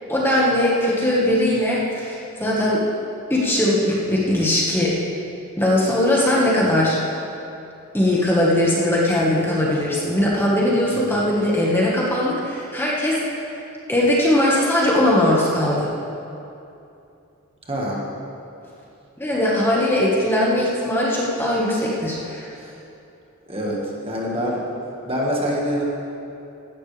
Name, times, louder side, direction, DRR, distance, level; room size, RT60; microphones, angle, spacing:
voice 1, 0.1-2.8 3.3-4.9 5.6-7.0 7.9-13.6 13.9-15.9 19.2-22.5, left 1 dB, 10° left, -5 dB, 1.6 m, -20 dB
voice 2, 10.9-11.3 17.7-18.0 22.6-22.8 23.5-24.6 25.0-25.8, equal, 25° right, -3 dB, 1.7 m, -26 dB
16.5 x 12.0 x 3.4 m, 2.7 s
head